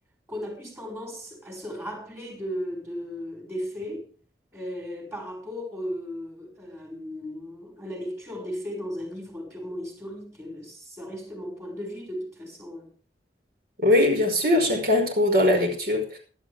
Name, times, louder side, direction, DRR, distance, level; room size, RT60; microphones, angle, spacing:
voice 1, 0.3-4.1 4.5-12.9, equal, 15° right, 6.0 m, -36 dB
voice 2, 13.8-16.2, left 1 dB, 55° right, 5.3 m, -21 dB
17.0 x 12.5 x 3.5 m
head